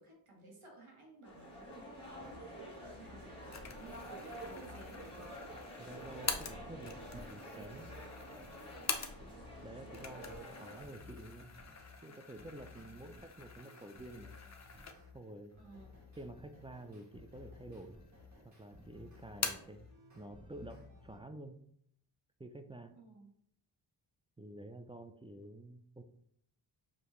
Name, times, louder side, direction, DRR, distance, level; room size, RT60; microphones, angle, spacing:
voice 1, 0.0-5.4 9.1-9.4 15.6-16.0 22.9-23.3, right 2 dB, 75° right, -1 dB, 1.5 m, -56 dB
sound 1, 1.2-10.9, right 1 dB, 10° left, 1.6 m, -49 dB
sound 2, 2.1-2.4 2.8-8.8 9.2-15.1 15.5-21.2, left 4 dB, 35° right, 1.5 m, -57 dB
sound 3, 3.5-9.5 9.8-15.3 15.7-15.8 16.6-17.3 17.6-18.4 18.7-19.8, left 5 dB, 35° left, 0.6 m, -45 dB
voice 2, 5.8-7.9 9.6-11.5 12.0-14.4 15.1-15.5 16.2-18.0 18.4-21.6 22.4-23.0 24.4-26.0, right 1 dB, 15° right, 7 dB, 0.3 m, -50 dB
5.0 x 2.7 x 3.0 m, 0.67 s
cardioid pair, 55°, 50 cm